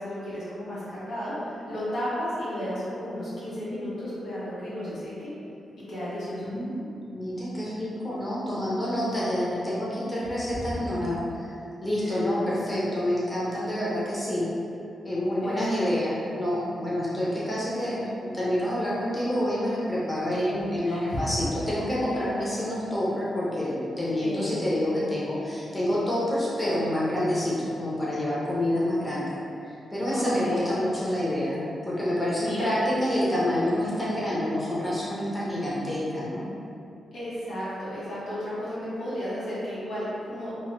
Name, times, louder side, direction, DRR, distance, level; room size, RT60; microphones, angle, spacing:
voice 1, 0.0-5.3 5.9-6.5 10.7-10.8 12.0-12.6 15.4-15.9 20.8-21.2 24.2-24.6 30.1-30.7 32.4-32.7 33.7-34.0 37.1-40.5, equal, 75° left, -11 dB, 1.0 m, -33 dB
voice 2, 6.4-11.5 11.8-14.5 15.0-29.4 29.6-36.5, left 1 dB, 20° left, -8 dB, 0.8 m, -28 dB
3.1 x 2.1 x 2.5 m, 2.7 s
cardioid pair, 60°, 0 cm